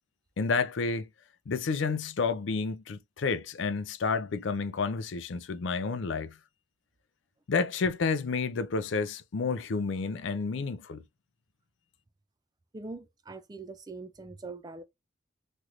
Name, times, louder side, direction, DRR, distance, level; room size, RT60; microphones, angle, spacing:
voice 1, 0.4-1.1 1.5-6.4 7.5-11.0, left 4 dB, 70° left, 0.4 m, -30 dB
voice 2, 12.7-14.8, right 3 dB, 20° right, 0.3 m, -42 dB
3.1 x 2.5 x 2.9 m
head